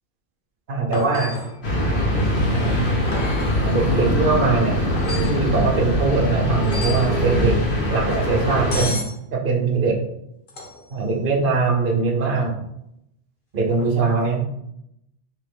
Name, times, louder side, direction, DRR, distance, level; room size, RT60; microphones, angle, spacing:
voice 1, 0.7-1.3 2.1-2.2 2.5-2.7 3.6-4.8 5.2-7.5 7.9-9.0 9.3-10.0 10.9-12.6 13.5-14.4, right 4 dB, 55° right, 2 dB, 0.8 m, -21 dB
sound 1, 0.9-1.6 3.1-3.6 5.0-5.4 6.6-7.1 8.7-9.2 10.5-11.0 13.7-13.9, left 2 dB, 50° left, 0.9 m, -31 dB
sound 2, 1.6-8.8, equal, 65° left, 1.2 m, -22 dB
3.3 x 2.9 x 3.5 m, 0.78 s
omnidirectional pair, 1.2 m